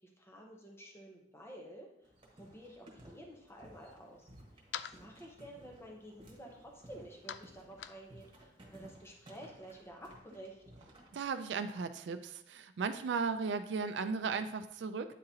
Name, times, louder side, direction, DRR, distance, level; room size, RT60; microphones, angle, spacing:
voice 1, 0.0-4.3 4.5-10.6, right 1 dB, 15° left, 0 dB, 0.8 m, -52 dB
sound 1, 2.0-11.2, right 1 dB, 30° right, 1.3 m, -58 dB
sound 2, 3.8-9.5, left 9 dB, 80° left, 0.3 m, -51 dB
voice 2, 11.1-15.1, right 5 dB, 80° right, 10 dB, 0.4 m, -36 dB
9.2 x 3.8 x 2.8 m, 0.75 s
head